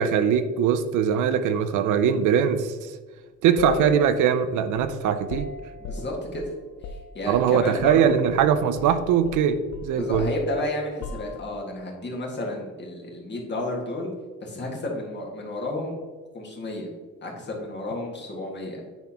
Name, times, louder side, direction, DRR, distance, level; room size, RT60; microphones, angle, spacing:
voice 1, 0.0-2.9 3.4-5.5 7.3-10.3, right 8 dB, 80° right, 10 dB, 0.5 m, -21 dB
sound 1, 3.6-8.0 8.3-8.5 8.8-11.7, left 5 dB, 65° left, 0.6 m, -37 dB
voice 2, 5.8-6.5 7.1-8.2 9.9-14.1 14.4-15.9 16.3-16.9 17.2-18.9, left 1 dB, 35° left, -1 dB, 1.8 m, -31 dB
9.2 x 4.1 x 2.9 m, 1.4 s
cardioid pair, 90°, 30 cm